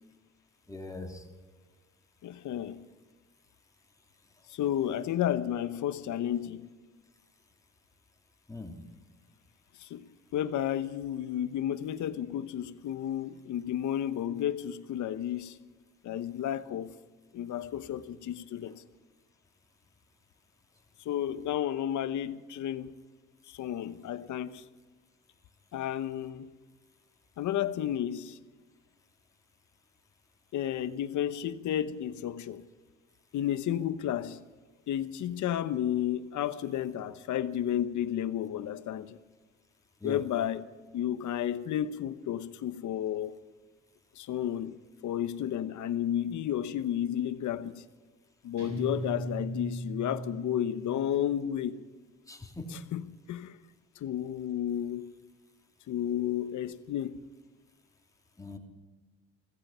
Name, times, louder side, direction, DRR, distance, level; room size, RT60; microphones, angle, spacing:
voice 1, 0.7-1.2 8.5-8.7 40.0-40.2 52.3-52.7 58.4-58.6, left 2 dB, 10° left, 3.0 m, -40 dB
voice 2, 2.2-2.8 4.5-6.7 9.8-15.6 16.0-17.0 17.3-18.8 21.0-22.9 23.5-24.6 25.7-26.5 27.4-28.4 30.5-32.7 33.3-34.4 34.9-39.2 40.0-43.3 44.2-44.8 45.0-47.8 48.4-51.8 52.7-53.6 54.0-55.1 55.9-57.2, left 10 dB, 75° left, 1.0 m, -32 dB
Guitar, 48.6-51.2, right 2 dB, 70° right, 5.9 m, -38 dB
16.0 x 16.0 x 5.6 m
cardioid pair, 90°, 30 cm